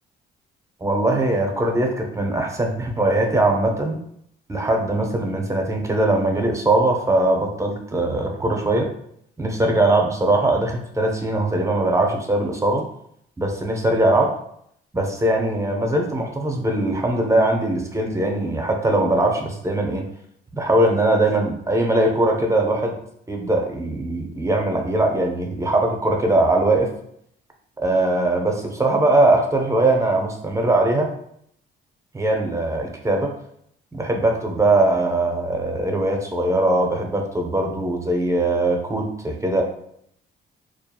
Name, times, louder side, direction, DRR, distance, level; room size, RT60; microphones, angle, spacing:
voice 1, 0.8-4.0 4.5-8.9 9.4-12.9 13.4-14.3 14.9-20.1 20.5-22.9 23.3-26.9 27.8-31.1 32.1-33.3 33.9-39.6, right 2 dB, 15° right, 2 dB, 0.5 m, -21 dB
2.8 x 2.3 x 2.2 m, 0.71 s
cardioid pair, 90°, 20 cm